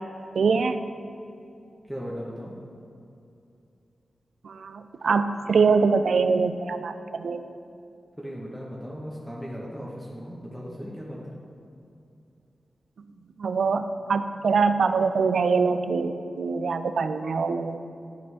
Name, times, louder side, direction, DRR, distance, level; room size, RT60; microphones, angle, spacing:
voice 1, 0.3-0.8 4.4-6.9 7.2-7.4 13.4-17.8, right 5 dB, 80° right, 9 dB, 0.3 m, -23 dB
voice 2, 1.9-2.5 8.2-11.3, equal, 5° right, -5 dB, 1.2 m, -37 dB
11.0 x 4.4 x 3.5 m, 2.6 s
cardioid pair, 50°, 0 cm